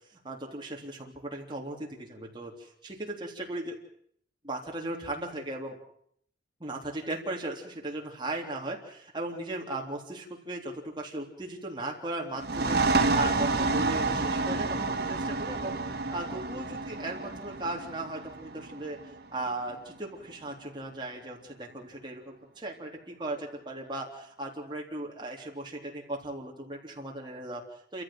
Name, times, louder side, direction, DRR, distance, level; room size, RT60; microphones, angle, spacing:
voice 1, 0.1-3.8 4.4-5.8 6.6-14.8 15.1-28.0, right 2 dB, 25° right, 0 dB, 3.4 m, -37 dB
sound 1, 12.4-19.8, right 3 dB, 55° right, 2.6 m, -29 dB
29.0 x 14.5 x 7.8 m, 0.67 s
head